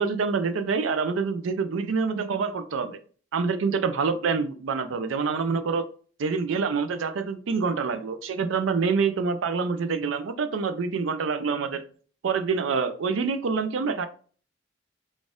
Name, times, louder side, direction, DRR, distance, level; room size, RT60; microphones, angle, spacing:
voice 1, 0.0-3.0 3.3-5.9 6.2-11.8 12.2-14.1, right 5 dB, 85° right, 10 dB, 0.4 m, -26 dB
4.0 x 2.4 x 3.6 m, 0.42 s
head